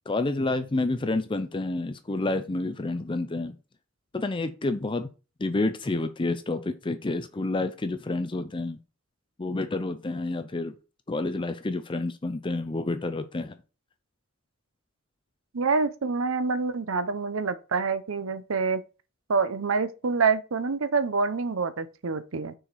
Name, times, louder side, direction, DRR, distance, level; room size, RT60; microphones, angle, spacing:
voice 1, 0.1-3.5 4.1-5.1 5.4-8.8 9.4-10.8 11.1-13.6, left 2 dB, 25° left, 0.5 m, -29 dB
voice 2, 15.5-18.8 19.3-22.5, right 4 dB, 85° right, 0.7 m, -26 dB
6.3 x 4.7 x 4.1 m
head